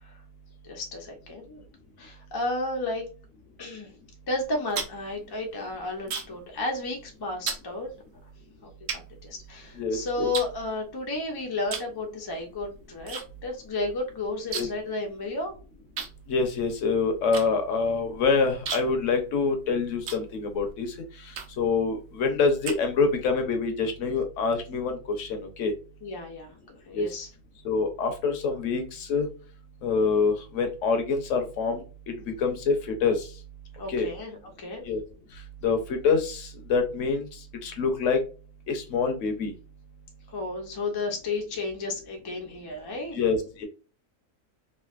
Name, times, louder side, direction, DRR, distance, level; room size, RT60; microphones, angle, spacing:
voice 1, 0.6-1.6 2.0-3.0 3.6-3.9 4.3-7.9 8.6-15.5 26.0-26.5 26.9-27.3 33.8-34.8 40.3-43.2, left 2 dB, 40° left, 2 dB, 0.3 m, -32 dB
sound 1, 4.4-6.5 6.8-7.1 7.5-7.7 8.3-8.4 8.9-9.8 10.3-11.2 11.6-12.0 12.3-13.2 13.5-13.6 13.9-14.9 15.2-15.3 16.0-20.7 21.3-21.7 22.2-23.3, right 6 dB, 60° right, 0.7 m, -36 dB
voice 2, 9.8-10.3 14.5-14.7 16.3-20.9 21.6-25.7 26.9-27.1 27.6-29.3 29.8-33.3 33.9-34.1 34.8-35.0 35.6-37.3 37.6-38.2 38.7-39.5 43.1-43.7, left 4 dB, 60° left, 6 dB, 0.9 m, -26 dB
3.2 x 2.5 x 2.4 m, 0.35 s
omnidirectional pair, 1.6 m